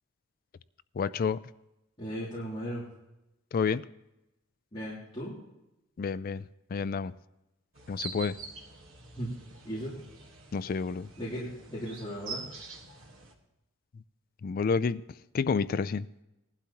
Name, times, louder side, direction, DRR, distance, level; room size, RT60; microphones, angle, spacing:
voice 1, 1.0-1.4 3.5-3.8 6.0-6.4 6.7-7.1 7.9-8.4 10.5-11.1 14.4-15.0 15.3-16.1, left 5 dB, 45° left, 0.3 m, -29 dB
voice 2, 2.0-2.8 4.7-5.4 9.2-9.3 9.6-10.0 11.2-12.5, equal, 25° left, 3.2 m, -36 dB
sound 1, 7.7-13.3, right 4 dB, 70° right, 1.6 m, -45 dB
19.5 x 12.0 x 2.9 m
head